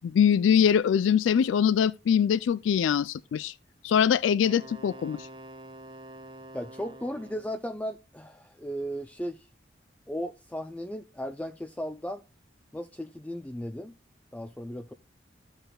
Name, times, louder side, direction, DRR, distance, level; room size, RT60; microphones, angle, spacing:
voice 1, 0.0-3.5 3.8-5.3, left 8 dB, 85° left, 0.3 m, -23 dB
Wind instrument woodwind instrument, 4.4-7.6, right 1 dB, 25° right, 0.8 m, -46 dB
voice 2, 6.5-9.5 10.1-12.2 12.7-14.0 14.3-14.9, equal, 5° left, 0.3 m, -36 dB
14.5 x 5.6 x 2.2 m
head